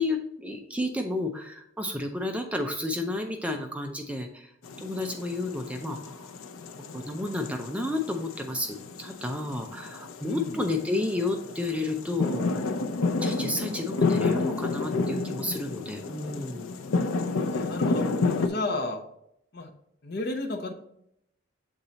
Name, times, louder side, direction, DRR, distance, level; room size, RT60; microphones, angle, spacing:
voice 1, 0.0-4.5 4.8-6.3 6.9-12.6 13.2-16.7, left 2 dB, 5° right, 3 dB, 0.5 m, -31 dB
sound 1, 4.6-18.5, left 3 dB, 80° left, 0.6 m, -30 dB
voice 2, 10.2-10.6 17.4-19.0 19.5-19.7 20.0-20.7, left 2 dB, 50° left, 4 dB, 0.8 m, -33 dB
7.1 x 3.9 x 4.0 m, 0.76 s
head